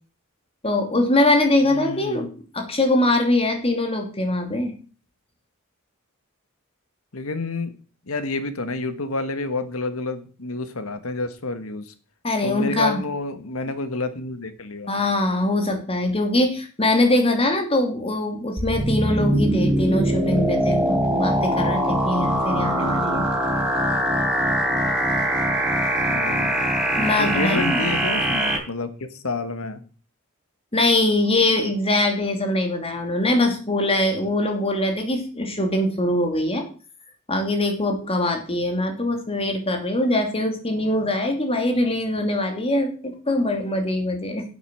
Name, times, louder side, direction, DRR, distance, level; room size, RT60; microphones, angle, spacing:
voice 1, 0.6-2.3 2.5-4.7 12.2-13.0 14.9-23.2 27.0-27.9 30.7-36.7 37.3-44.4, left 1 dB, 30° left, 4 dB, 2.8 m, -22 dB
voice 2, 1.6-2.3 7.1-7.7 8.1-11.9 12.4-14.9 26.0-26.7 27.2-29.8, left 3 dB, 90° left, 10 dB, 1.6 m, -29 dB
sound 1, 18.6-28.6, equal, 5° right, 3.7 m, -22 dB
10.0 x 8.2 x 6.3 m, 0.38 s
head